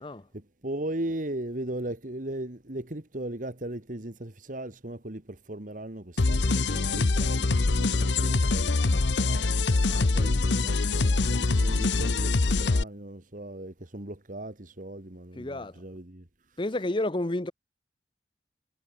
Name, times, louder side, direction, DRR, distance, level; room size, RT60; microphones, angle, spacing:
voice 1, 0.6-5.2 5.5-9.4 10.2-16.2, right 1 dB, 45° right, 2.0 m, -37 dB
sound 1, 6.2-12.8, left 3 dB, 85° left, 0.9 m, -24 dB
voice 2, 9.8-10.4 15.4-15.8 16.6-17.5, left 1 dB, 30° left, 0.9 m, -31 dB
head